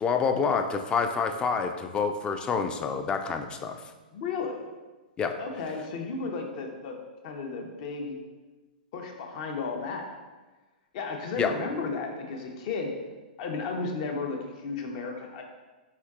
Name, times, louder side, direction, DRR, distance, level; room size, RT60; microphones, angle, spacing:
voice 1, 0.0-3.8 5.2-5.3 11.4-11.5, left 5 dB, 20° left, 6 dB, 0.4 m, -27 dB
voice 2, 4.1-4.6 5.4-7.0 7.2-8.2 8.9-10.2 10.9-12.9 13.4-15.4, left 4 dB, 50° left, 2 dB, 0.8 m, -33 dB
4.6 x 4.2 x 2.4 m, 1.2 s
hypercardioid pair, 120°, 5 cm